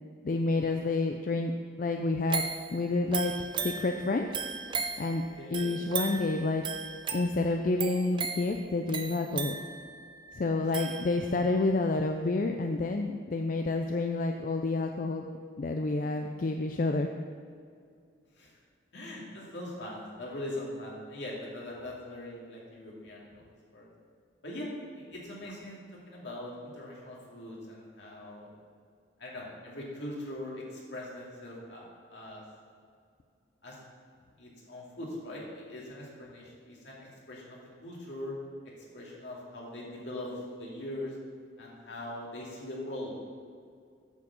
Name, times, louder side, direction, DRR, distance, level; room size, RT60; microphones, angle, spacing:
voice 1, 0.2-1.5 1.8-2.4 2.7-4.3 5.0-5.2 5.5-6.6 7.1-9.6 10.3-15.2 15.6-17.1, left 3 dB, 45° left, 5 dB, 0.4 m, -29 dB
sound 1, 2.3-11.6 12.0-12.1, right 6 dB, 25° right, 0.4 m, -37 dB
voice 2, 5.4-5.7 10.6-10.8 18.4-18.5 18.9-23.4 23.7-23.9 24.4-25.8 26.1-28.5 29.2-32.4 33.6-33.8 34.4-38.4 38.9-41.2 41.6-43.1, left 1 dB, 70° left, -4 dB, 2.2 m, -41 dB
8.4 x 4.7 x 6.9 m, 2.2 s
head